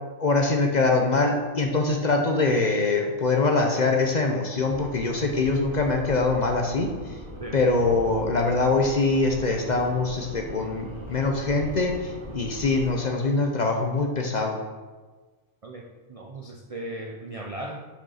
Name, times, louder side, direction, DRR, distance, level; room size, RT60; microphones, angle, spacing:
voice 1, 0.2-7.2 7.5-14.6, left 3 dB, 45° left, 2 dB, 0.7 m, -23 dB
sound 1, 4.7-12.9, equal, 25° right, 1.0 m, -40 dB
voice 2, 15.6-17.8, right 1 dB, 60° right, 2 dB, 0.3 m, -37 dB
5.4 x 5.2 x 5.5 m, 1.3 s
omnidirectional pair, 1.4 m